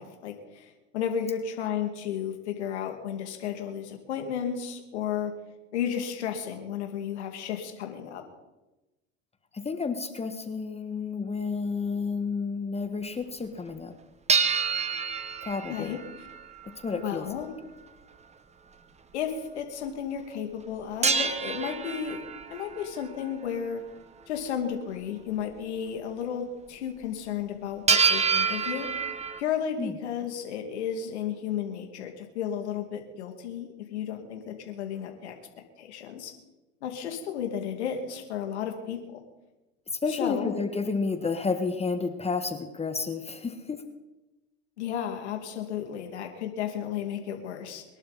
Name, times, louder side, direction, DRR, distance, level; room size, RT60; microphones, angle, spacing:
voice 1, 0.0-5.3 5.7-8.2 15.7-16.3 17.0-17.5 19.1-22.2 22.5-23.8 24.3-28.9 29.4-35.4 35.8-36.3 36.8-39.2 40.1-40.6 44.8-47.8, left 8 dB, 85° left, 4 dB, 2.4 m, -33 dB
voice 2, 9.5-13.9 15.4-16.0 16.8-17.2 29.8-29.9 40.0-43.8, left 4 dB, 20° left, 8 dB, 1.4 m, -31 dB
sound 1, 14.3-16.7 21.0-22.9 27.9-29.4, right 5 dB, 20° right, 1.3 m, -27 dB
23.0 x 11.5 x 4.1 m, 1.0 s
hypercardioid pair, 95°, 33 cm